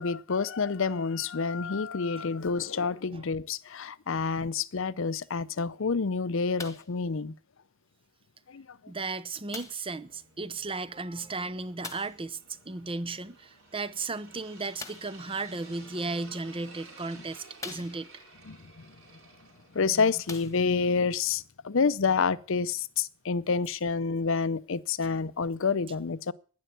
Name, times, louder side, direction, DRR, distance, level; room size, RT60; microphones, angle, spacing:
voice 1, 0.0-7.3 8.5-8.8 18.5-18.6 19.7-26.3, left 5 dB, 65° left, 0.6 m, -28 dB
sound 1, 6.6-7.0 7.9-8.0 9.5-9.9 11.8-12.2 14.8-15.2 16.2-16.3 16.9-17.0 17.6-18.3 19.6-19.7 20.2-20.9 21.7-21.8, left 4 dB, 15° left, 1.6 m, -43 dB
voice 2, 8.9-12.4 12.6-18.1 25.0-25.1, right 3 dB, 25° right, 0.8 m, -35 dB
sound 2, 9.8-21.4, right 3 dB, 70° right, 4.9 m, -54 dB
11.0 x 10.5 x 9.2 m
head